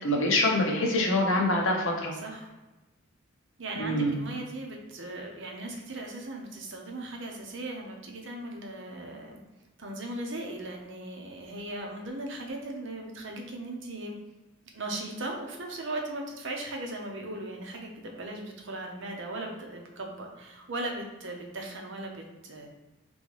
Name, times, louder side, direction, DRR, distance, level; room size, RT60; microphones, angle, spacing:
voice 1, 0.0-2.1 3.8-4.2, left 1 dB, 70° left, 1 dB, 0.9 m, -25 dB
voice 2, 2.2-2.5 3.6-9.4 9.8-14.2 14.7-22.7, right 2 dB, 60° right, 1 dB, 0.8 m, -38 dB
3.9 x 3.4 x 3.3 m, 1.1 s
head